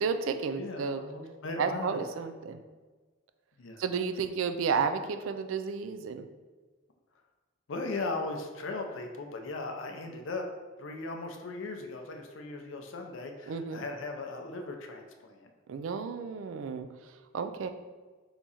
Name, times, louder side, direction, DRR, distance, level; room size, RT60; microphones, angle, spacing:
voice 1, 0.0-1.0 1.6-2.6 3.8-6.3 13.5-13.8 15.7-16.9 17.3-17.7, right 5 dB, 85° right, 9 dB, 0.3 m, -32 dB
voice 2, 0.6-2.0 3.6-3.8 7.7-10.5 10.8-15.5, left 3 dB, 70° left, 4 dB, 0.5 m, -38 dB
3.5 x 3.0 x 4.0 m, 1.3 s
head